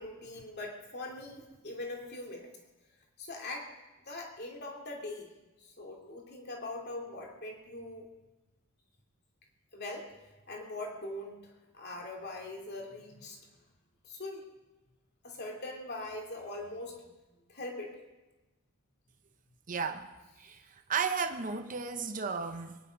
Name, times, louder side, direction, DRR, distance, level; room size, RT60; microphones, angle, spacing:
voice 1, 0.0-2.5 3.2-3.7 4.1-5.3 5.6-8.0 9.7-10.1 10.5-13.4 14.0-14.4 15.2-17.1 17.5-17.9, left 2 dB, 50° left, 1 dB, 2.8 m, -42 dB
voice 2, 19.7-20.1 20.4-22.8, right 5 dB, 35° right, 6 dB, 0.8 m, -34 dB
22.5 x 10.5 x 5.2 m, 1.1 s
head